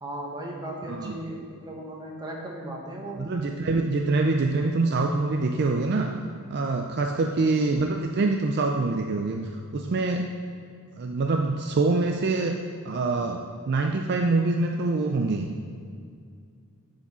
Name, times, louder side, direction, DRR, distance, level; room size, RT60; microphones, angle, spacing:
voice 1, 0.0-3.2, right 1 dB, 20° right, -2 dB, 1.3 m, -37 dB
voice 2, 0.9-1.2 3.2-6.1 6.5-10.3 11.0-12.6 12.8-15.5, right 3 dB, 50° right, 3 dB, 0.4 m, -25 dB
10.5 x 4.9 x 4.3 m, 2.2 s
head